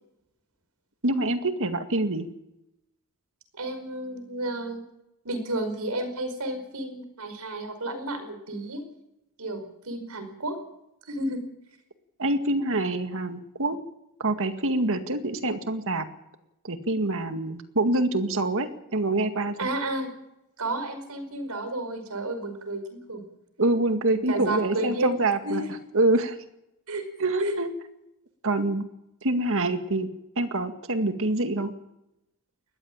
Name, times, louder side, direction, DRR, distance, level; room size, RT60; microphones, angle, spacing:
voice 1, 1.0-2.3 12.2-13.8 14.2-16.1 16.6-19.6 23.6-25.6 25.9-26.4 27.2-27.7 28.4-28.9 29.2-30.1 30.4-31.7, right 2 dB, 65° right, 7 dB, 2.0 m, -25 dB
voice 2, 3.5-4.8 5.2-8.8 9.4-10.6 11.1-11.4 19.6-20.1 20.6-23.3 24.1-25.7 26.9-27.0 27.4-27.6, right 1 dB, 85° right, 8 dB, 5.3 m, -32 dB
20.0 x 15.0 x 8.9 m, 0.87 s
head